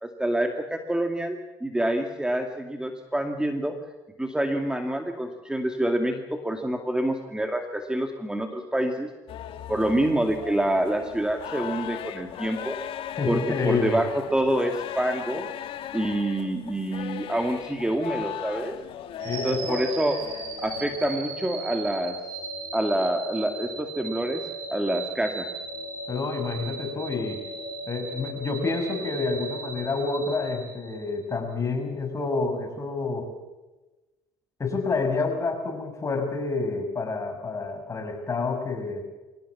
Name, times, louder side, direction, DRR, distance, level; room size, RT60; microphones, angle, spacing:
voice 1, 0.0-3.8 4.2-9.1 9.7-12.8 13.3-13.4 13.6-15.5 15.9-18.7 19.4-20.2 20.6-22.2 22.7-24.4 24.7-25.5, right 1 dB, 10° right, 5 dB, 2.3 m, -27 dB
sound 1, 9.3-21.2, left 10 dB, 65° left, 1.7 m, -38 dB
voice 2, 13.2-14.0 19.2-19.8 26.1-27.4 27.9-33.3 34.6-39.1, left 4 dB, 30° left, 5 dB, 6.4 m, -28 dB
sound 2, 19.2-31.3, right 2 dB, 80° right, 7.7 m, -36 dB
24.0 x 17.5 x 7.3 m, 1.1 s
supercardioid pair, 80°, 10 cm